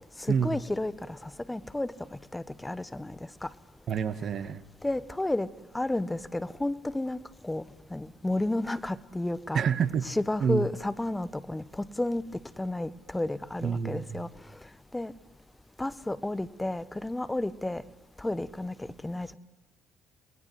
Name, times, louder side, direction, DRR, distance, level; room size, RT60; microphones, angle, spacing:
voice 1, 0.2-1.9 2.3-3.1 3.4-3.5 4.8-5.5 5.7-7.2 7.4-7.6 7.9-9.6 10.0-12.3 12.6-14.3 14.9-15.1 15.8-17.8 18.2-19.3, left 1 dB, 15° left, 13 dB, 1.4 m, -31 dB
voice 2, 3.9-4.6 9.5-10.1 10.4-10.7 13.6-14.2, right 7 dB, 55° right, 14 dB, 1.4 m, -28 dB
28.5 x 20.5 x 7.8 m, 1.0 s
hypercardioid pair, 50°, 0 cm